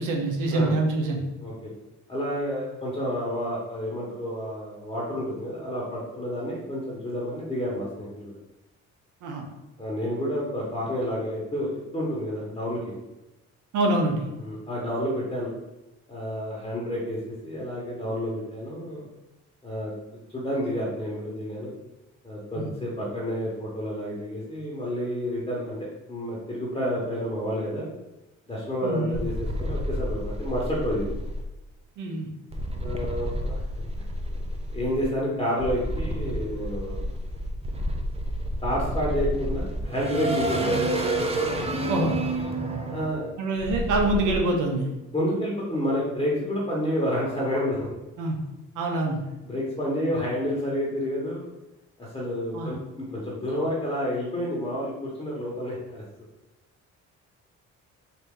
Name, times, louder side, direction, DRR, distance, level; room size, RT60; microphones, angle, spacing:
voice 1, 0.0-1.2 9.2-9.4 13.7-14.3 22.6-22.7 28.8-29.2 32.0-32.3 41.9-42.2 43.4-44.9 48.2-48.4 48.8-49.2 52.5-52.7, right 2 dB, 85° right, 2 dB, 0.9 m, -25 dB
voice 2, 1.4-1.7 2.1-8.4 9.8-12.9 14.4-15.5 16.1-19.1 19.6-19.9 20.3-21.7 22.2-27.9 28.5-31.1 32.8-33.6 34.0-34.1 34.7-37.1 38.6-40.7 42.9-43.2 45.1-47.9 49.5-51.5 52.0-56.0, equal, 15° left, -4 dB, 1.2 m, -29 dB
sound 1, 29.1-31.4 32.5-35.1 35.6-44.4, right 1 dB, 20° right, 0.6 m, -29 dB
4.1 x 2.7 x 3.7 m, 0.99 s
cardioid pair, 90°, 30 cm